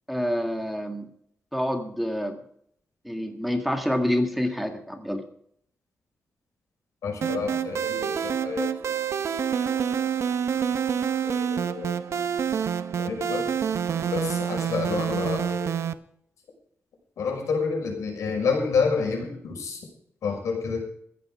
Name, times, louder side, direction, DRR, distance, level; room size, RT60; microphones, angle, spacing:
voice 1, 0.1-1.1 1.5-2.4 3.1-5.2, equal, ahead, 4 dB, 1.8 m, -27 dB
voice 2, 7.0-8.7 11.2-11.9 13.0-13.5 14.1-15.7 17.2-19.8 20.2-20.9, left 5 dB, 90° left, 2 dB, 5.9 m, -28 dB
sound 1, 7.2-15.9, right 8 dB, 65° right, 0.9 m, -27 dB
15.0 x 11.5 x 4.9 m, 0.67 s
wide cardioid pair, 120°, 5 cm